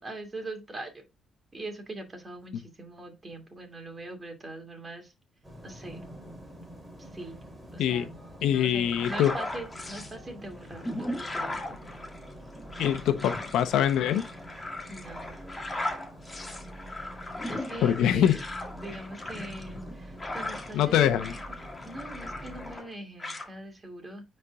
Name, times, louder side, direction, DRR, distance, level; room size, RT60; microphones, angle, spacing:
voice 1, 0.0-1.0 1.5-5.1 5.6-6.0 7.0-7.4 7.7-8.2 8.4-11.9 14.9-15.3 15.7-15.8 17.5-18.4 18.7-21.4 21.8-24.2, right 2 dB, 30° right, 2.5 m, -42 dB
sound 1, 5.4-22.8, equal, 10° right, 3.2 m, -46 dB
voice 2, 8.4-9.3 12.8-14.2 17.8-18.4 20.7-21.3, left 10 dB, 85° left, 0.8 m, -24 dB
sound 2, 8.9-10.1 10.6-20.9 21.2-22.9 23.2-23.5, left 1 dB, 15° left, 1.9 m, -38 dB
9.6 x 4.5 x 2.4 m
cardioid pair, 90°, 0 cm